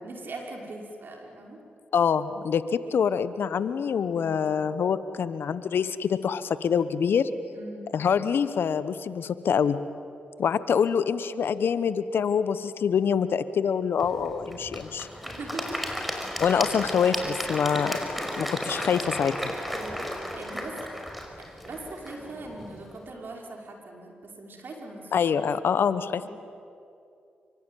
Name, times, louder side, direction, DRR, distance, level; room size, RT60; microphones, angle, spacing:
voice 1, 0.0-1.6 4.1-4.5 7.5-7.9 15.3-15.8 19.7-20.7 21.6-25.4 26.2-26.3, right 2 dB, 60° right, 1 dB, 5.3 m, -41 dB
voice 2, 1.9-7.3 7.9-9.8 10.4-15.1 16.4-18.0 18.4-19.5 25.1-26.3, left 7 dB, 65° left, 14 dB, 1.1 m, -25 dB
Applause / Crowd, 14.0-23.1, equal, ahead, 5.5 m, -34 dB
25.0 x 24.0 x 9.2 m, 2.5 s
hypercardioid pair, 40°, 4 cm